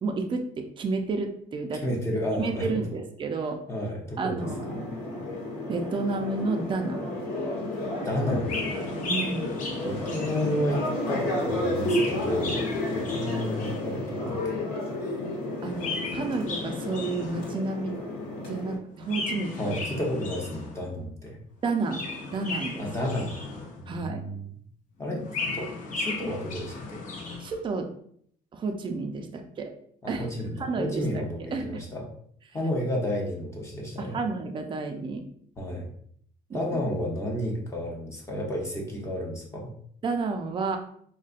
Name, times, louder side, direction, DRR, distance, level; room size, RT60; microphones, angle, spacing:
voice 1, 0.0-1.8 2.4-3.6 4.2-4.6 5.7-7.1 9.0-9.6 15.6-17.9 18.5-19.7 21.6-22.0 22.3-22.8 23.9-24.2 27.4-27.9 28.5-29.7 30.1-30.3 30.6-31.3 31.5-31.8 34.0-35.2 36.5-36.8 40.0-40.8, right 3 dB, 30° right, 4 dB, 0.5 m, -30 dB
voice 2, 1.8-2.8 3.7-4.8 8.0-8.5 9.8-14.6 15.0-15.1 19.6-21.4 22.8-23.3 23.8-24.5 25.0-25.2 25.5-27.0 30.0-32.0 32.5-34.2 35.6-35.9 36.5-39.7, equal, 15° left, -2 dB, 0.8 m, -31 dB
sound 1, 4.4-18.8, left 1 dB, 70° left, 1.2 m, -32 dB
Chirp tweet, 8.4-10.9 11.6-14.0 15.6-17.7 19.0-20.9 21.7-24.0 25.0-27.6, left 3 dB, 50° left, 0.7 m, -36 dB
4.0 x 2.1 x 2.4 m, 0.63 s
cardioid pair, 110°, 17 cm